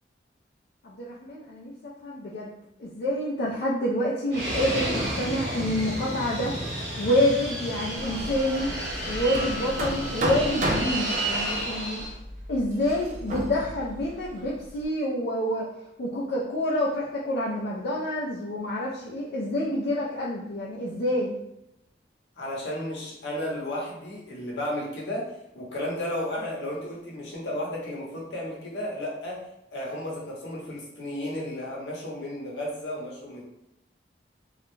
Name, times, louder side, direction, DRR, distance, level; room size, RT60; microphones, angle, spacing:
voice 1, 0.8-2.5 2.8-6.6 7.0-8.7 9.1-12.1 12.5-15.7 16.0-21.4, left 1 dB, 65° left, -5 dB, 0.4 m, -28 dB
Fixed-wing aircraft airplane, 4.3-12.1, right 1 dB, 80° right, 1.0 m, -31 dB
Hammer, 7.9-14.8, right 1 dB, 45° right, 0.4 m, -34 dB
voice 2, 22.4-33.4, left 1 dB, 85° left, -3 dB, 0.8 m, -33 dB
2.3 x 2.1 x 3.0 m, 0.84 s
head